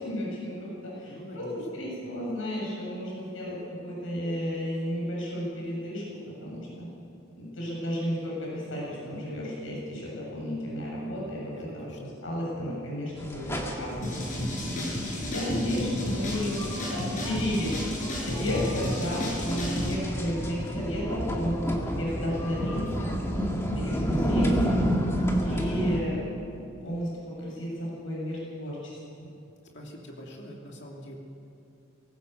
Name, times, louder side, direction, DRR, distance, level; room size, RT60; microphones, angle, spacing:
voice 1, 0.0-6.9 7.4-17.8 18.2-23.1 23.7-24.9 25.4-26.2 26.5-29.3, equal, 80° left, -4 dB, 7.5 m, -33 dB
voice 2, 1.0-1.7 11.5-12.0 29.7-31.2, equal, 60° left, -2 dB, 2.9 m, -44 dB
sound 1, 13.2-26.0, equal, 15° left, 2.2 m, -31 dB
sound 2, 14.0-19.9, left 1 dB, 40° left, 6.7 m, -32 dB
20.0 x 18.0 x 8.0 m, 2.6 s
head